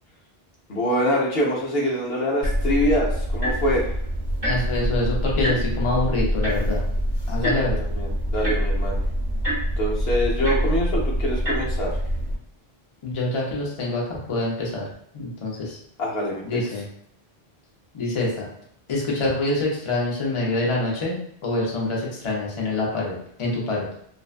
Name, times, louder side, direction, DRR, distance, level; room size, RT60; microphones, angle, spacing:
voice 1, 0.7-3.9 7.4-9.0 9.8-12.0 16.0-16.6, equal, 75° left, -3 dB, 0.9 m, -25 dB
sound 1, 2.4-12.3, equal, 45° right, 0.9 m, -25 dB
voice 2, 4.4-6.8 7.3-7.8 13.0-14.8 15.1-15.8 16.4-16.9 17.9-18.5 18.9-23.8, left 2 dB, 35° left, -3 dB, 0.6 m, -26 dB
2.5 x 2.2 x 2.4 m, 0.67 s
omnidirectional pair, 1.1 m